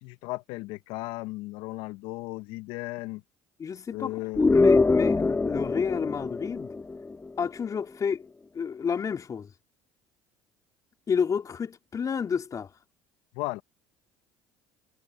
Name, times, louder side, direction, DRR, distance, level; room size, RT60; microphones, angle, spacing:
voice 1, 0.0-3.2 3.9-4.4 13.3-13.6, left 21 dB, 70° left, 1.1 m, -35 dB
voice 2, 3.6-4.2 4.5-6.7 7.4-8.3 8.5-9.5 11.1-12.7, left 6 dB, 35° left, 4.1 m, -30 dB
sound 1, 4.4-7.3, left 3 dB, 20° left, 1.9 m, -23 dB
hypercardioid pair, 70°, 9 cm